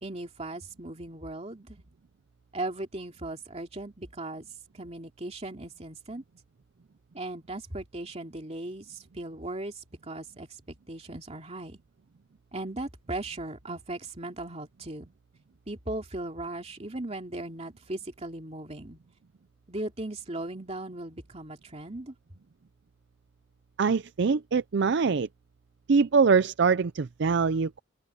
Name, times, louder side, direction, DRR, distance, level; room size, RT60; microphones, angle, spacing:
voice 1, 0.0-1.8 2.5-4.5 4.7-6.2 7.1-11.8 12.5-15.1 15.7-19.0 19.7-22.1, right 2 dB, 30° right, 2.8 m, -38 dB
voice 2, 23.8-25.3 25.9-27.8, right 5 dB, 60° right, 0.5 m, -23 dB
open air
head